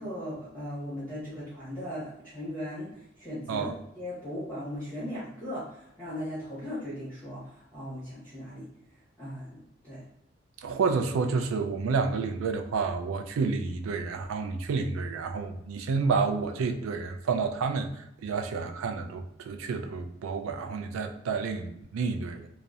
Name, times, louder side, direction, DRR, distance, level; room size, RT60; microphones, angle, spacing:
voice 1, 0.0-3.7 4.0-8.7 9.2-9.6 9.8-10.0, equal, 5° left, 0.8 m, -38 dB
voice 2, 10.6-22.5, right 4 dB, 85° right, 0.3 m, -30 dB
2.7 x 2.0 x 2.3 m
head